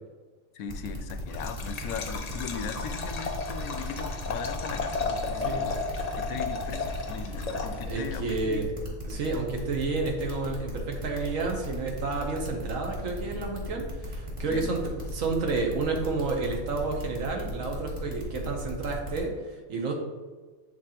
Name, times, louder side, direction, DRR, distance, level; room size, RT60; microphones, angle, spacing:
voice 1, 0.5-5.8 6.2-8.7 14.5-14.7, left 7 dB, 85° left, 9 dB, 1.0 m, -38 dB
sound 1, 0.7-19.2, equal, 25° right, 1.4 m, -38 dB
Liquid, 1.3-8.1, left 4 dB, 50° left, 0.5 m, -34 dB
voice 2, 7.9-8.7 9.0-14.8 15.1-19.9, right 3 dB, 70° right, 2 dB, 1.3 m, -30 dB
8.9 x 4.0 x 2.9 m, 1.4 s
omnidirectional pair, 1.4 m